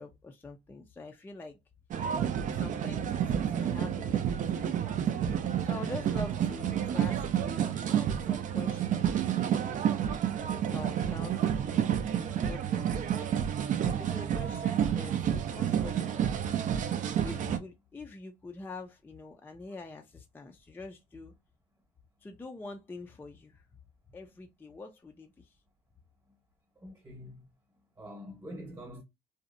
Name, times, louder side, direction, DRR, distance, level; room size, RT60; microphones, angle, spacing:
voice 1, 0.0-1.6 2.5-5.0 5.6-9.3 10.7-13.4 13.8-16.4 17.2-21.3 22.2-23.6 24.1-25.6, left 3 dB, 10° left, 0.4 m, -45 dB
sound 1, 1.9-17.6, right 9 dB, 50° right, 0.4 m, -30 dB
voice 2, 26.8-27.4 28.0-29.0, equal, 20° right, 1.0 m, -45 dB
2.6 x 2.0 x 2.5 m
cardioid pair, 110°, 17 cm